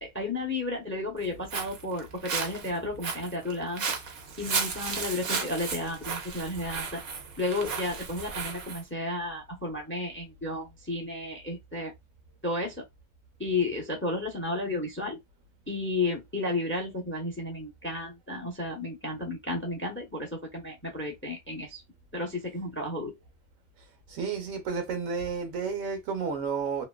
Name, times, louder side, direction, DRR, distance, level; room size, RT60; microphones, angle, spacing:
voice 1, 0.0-3.8 4.4-7.0 7.4-11.9 12.4-12.8 13.4-15.2 15.7-21.8 22.1-23.1, left 2 dB, 15° left, 0.6 m, -32 dB
Walk footsteps, 1.2-8.8, right 5 dB, 55° right, 0.9 m, -34 dB
voice 2, 24.1-26.8, right 5 dB, 80° right, 1.3 m, -31 dB
3.0 x 2.7 x 2.2 m
omnidirectional pair, 1.4 m